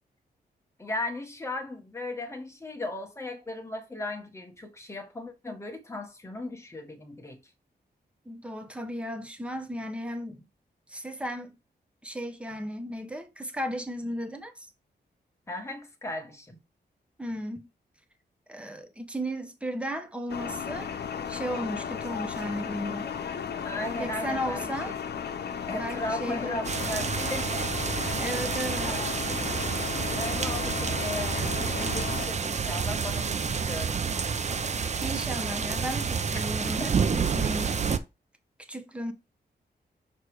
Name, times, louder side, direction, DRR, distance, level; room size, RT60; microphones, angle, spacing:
voice 1, 0.8-7.4 15.5-16.6 23.6-25.0 25.7-28.3 28.8-29.6 30.1-34.6 36.3-36.4 36.8-37.0, left 2 dB, 15° left, 1.4 m, -37 dB
voice 2, 8.3-10.5 10.9-11.6 12.0-14.7 17.2-17.7 18.5-20.9 21.3-23.1 24.0-24.9 25.8-26.6 27.0-27.2 28.2-28.9 34.9-37.8 38.7-39.1, equal, 5° right, 1.0 m, -35 dB
sound 1, 20.3-32.3, left 7 dB, 70° left, 0.8 m, -35 dB
sound 2, 26.6-38.0, right 6 dB, 40° right, 0.6 m, -29 dB
6.6 x 3.3 x 4.7 m
wide cardioid pair, 135°, 18 cm